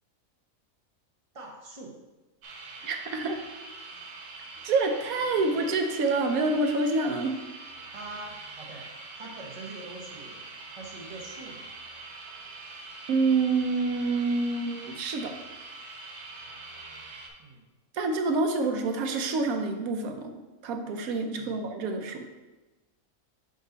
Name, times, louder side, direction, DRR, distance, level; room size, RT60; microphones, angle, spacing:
voice 1, 1.3-2.0 7.9-8.9 9.2-10.4 10.7-11.7 17.4-17.7 21.4-21.6, right 2 dB, 25° right, -1 dB, 1.0 m, -43 dB
sound 1, 2.4-17.3, right 3 dB, 60° right, 1.1 m, -44 dB
voice 2, 2.8-3.4 4.6-7.4 13.1-15.3 17.9-22.3, right 3 dB, 85° right, 5 dB, 1.1 m, -27 dB
5.6 x 5.2 x 3.9 m, 1.1 s
omnidirectional pair, 1.4 m